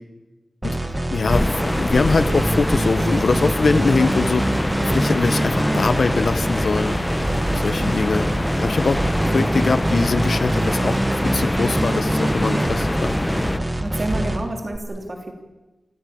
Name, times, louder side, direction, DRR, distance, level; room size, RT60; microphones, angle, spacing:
sound 1, 0.6-14.8, right 1 dB, 20° right, 1.6 m, -24 dB
voice 1, 1.1-7.0 7.5-8.3 8.6-9.0 9.3-11.0 11.2-13.1, left 4 dB, 65° left, 11 dB, 1.2 m, -22 dB
sound 2, 1.3-13.6, left 1 dB, 15° left, 0.9 m, -25 dB
voice 2, 13.8-15.4, right 1 dB, 35° right, 4 dB, 3.0 m, -30 dB
29.5 x 15.5 x 8.8 m, 1.1 s
wide cardioid pair, 115°, 0 cm